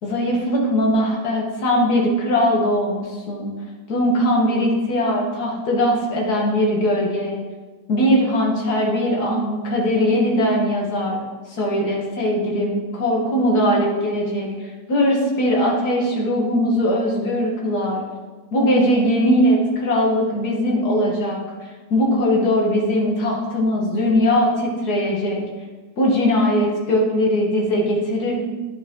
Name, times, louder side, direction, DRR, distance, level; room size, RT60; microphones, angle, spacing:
voice 1, 0.0-3.5 3.9-7.4 7.9-11.2 11.5-14.5 14.9-18.0 18.5-21.4 21.9-25.4 26.0-28.4, equal, 60° left, -2 dB, 2.1 m, -20 dB
10.5 x 5.7 x 3.7 m, 1.3 s
omnidirectional pair, 1.9 m